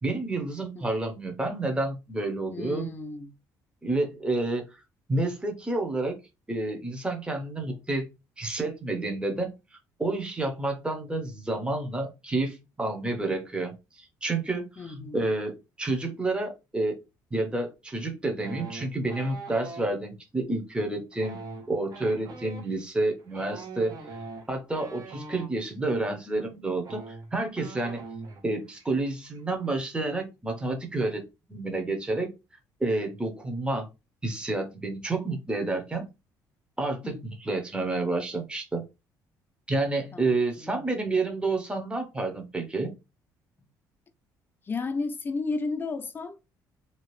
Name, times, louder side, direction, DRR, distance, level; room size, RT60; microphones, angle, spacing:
voice 1, 0.0-2.9 3.8-4.6 5.1-6.2 6.5-8.1 8.4-9.5 10.0-17.0 17.3-21.4 21.7-24.0 24.5-28.0 28.4-32.3 32.8-33.9 34.2-36.1 36.8-38.8 39.7-42.9, right 2 dB, 15° right, 0.9 m, -29 dB
voice 2, 2.5-3.4 14.8-15.3 37.0-37.2 40.1-40.9 44.6-46.4, left 3 dB, 25° left, 0.5 m, -33 dB
sound 1, 18.4-19.9 21.1-25.5 26.4-26.5 26.8-28.4 28.7-29.0 29.2-29.7, right 3 dB, 50° right, 1.1 m, -42 dB
2.8 x 2.4 x 3.2 m
cardioid pair, 95°, 8 cm